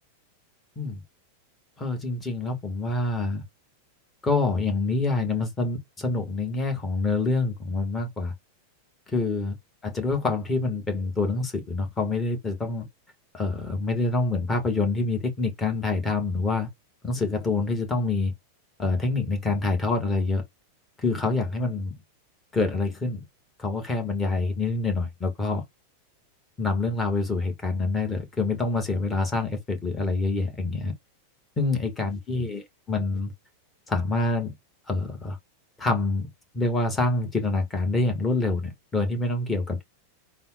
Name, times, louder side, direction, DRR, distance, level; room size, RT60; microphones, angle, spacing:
voice 1, 1.8-3.4 4.2-8.3 9.1-9.6 9.8-12.9 13.3-16.7 17.0-18.3 18.8-20.4 21.0-21.9 22.5-23.2 23.6-25.6 26.6-30.9 31.6-33.3 33.9-34.5 34.9-35.4 35.8-36.3 36.5-39.8, left 3 dB, 15° left, 1.3 m, -26 dB
3.9 x 2.1 x 3.9 m
figure-of-eight pair, 90°, 0 cm